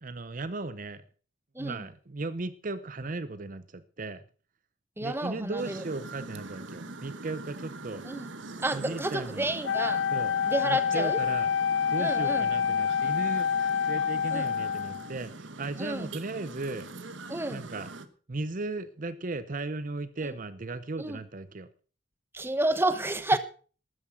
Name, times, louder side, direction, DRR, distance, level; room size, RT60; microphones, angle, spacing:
voice 1, 0.0-1.0 1.6-4.2 5.0-8.0 8.7-9.5 10.1-10.3 10.6-11.5 11.9-16.9 17.5-17.9 18.3-21.7, right 3 dB, 45° right, 0.7 m, -36 dB
voice 2, 5.0-5.8 8.1-8.3 8.6-10.0 10.5-11.2 12.0-12.5 14.3-14.5 15.8-16.1 17.3-17.6 21.0-21.2 22.3-23.4, right 2 dB, 10° right, 1.0 m, -30 dB
sound 1, 5.6-18.1, right 3 dB, 80° right, 1.2 m, -43 dB
Wind instrument woodwind instrument, 9.6-15.1, left 7 dB, 70° left, 0.5 m, -27 dB
13.0 x 9.4 x 6.1 m
head